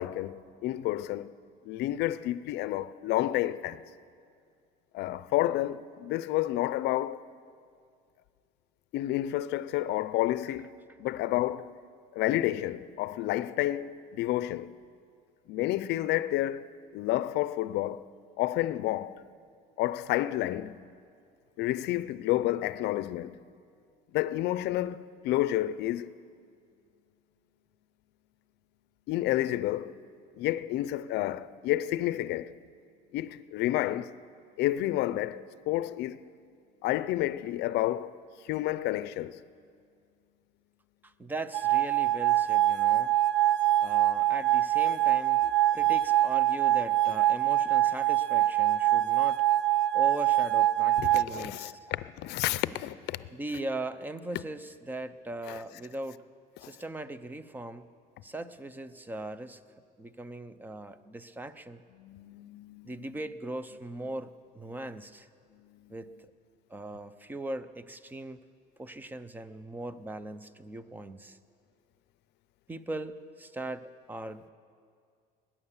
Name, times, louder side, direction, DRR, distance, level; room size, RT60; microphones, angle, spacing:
voice 1, 0.0-1.3 1.7-3.8 4.9-7.2 8.9-10.7 11.0-11.7 12.1-14.7 15.5-16.7 16.9-18.0 18.4-19.2 19.8-20.7 21.6-23.4 24.1-26.1 29.1-30.0 30.4-32.5 33.1-34.1 34.6-36.2 36.8-38.1 38.4-39.4 51.0-53.3 55.5-55.6 62.0-63.1 65.6-65.9, left 15 dB, 65° left, 0.5 m, -30 dB
voice 2, 41.0-43.1 43.8-49.4 49.9-51.8 53.3-56.2 56.7-57.9 58.2-59.6 60.0-61.8 62.8-65.3 65.9-66.1 66.7-68.4 68.8-71.4 72.7-74.5, right 2 dB, 10° right, 0.4 m, -39 dB
sound 1, 41.5-51.2, right 14 dB, 70° right, 0.5 m, -24 dB
20.0 x 9.9 x 7.2 m
cardioid pair, 150°, 19 cm